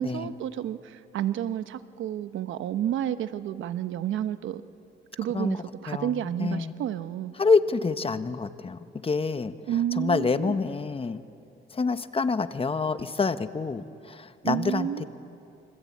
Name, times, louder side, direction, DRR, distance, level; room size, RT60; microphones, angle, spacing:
voice 1, 0.0-4.6 5.1-7.3 9.7-10.5 14.4-15.0, right 11 dB, 80° right, 12 dB, 1.0 m, -30 dB
voice 2, 5.9-6.7 7.4-9.5 10.0-11.2 11.7-15.0, left 4 dB, 30° left, 11 dB, 1.1 m, -27 dB
27.0 x 25.5 x 8.6 m, 2.6 s
cardioid pair, 90°, 20 cm